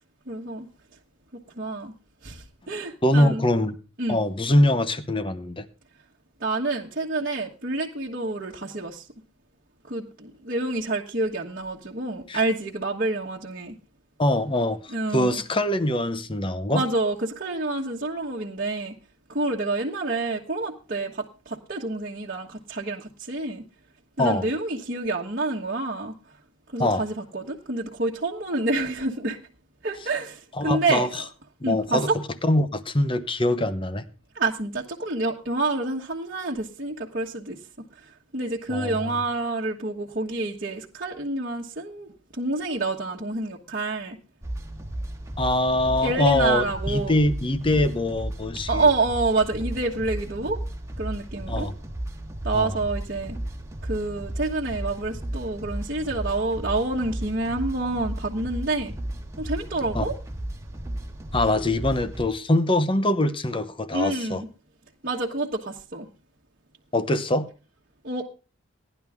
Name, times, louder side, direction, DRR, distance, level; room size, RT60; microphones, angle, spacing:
voice 1, 0.3-0.7 1.3-1.9 2.2-3.4 4.0-4.2 6.4-9.0 9.9-13.8 14.9-15.4 16.7-18.9 19.3-23.6 24.2-26.1 26.7-29.4 29.8-31.2 31.6-32.2 34.3-44.2 46.0-47.1 48.7-50.6 51.0-51.7 52.4-53.4 53.8-58.9 59.4-60.2 63.9-64.5 65.0-66.1 68.0-68.2, right 2 dB, 50° right, 1.4 m, -28 dB
voice 2, 3.0-3.8 4.1-5.6 12.3-12.4 14.2-16.8 24.2-24.4 26.8-27.0 30.6-31.1 31.6-32.1 32.4-34.0 38.7-39.2 45.4-48.9 51.5-51.7 52.5-52.7 59.9-60.1 61.3-64.4 66.9-67.5, left 1 dB, 25° left, 1.0 m, -23 dB
sound 1, 44.4-62.3, right 1 dB, 15° right, 1.3 m, -34 dB
17.0 x 11.0 x 3.6 m
head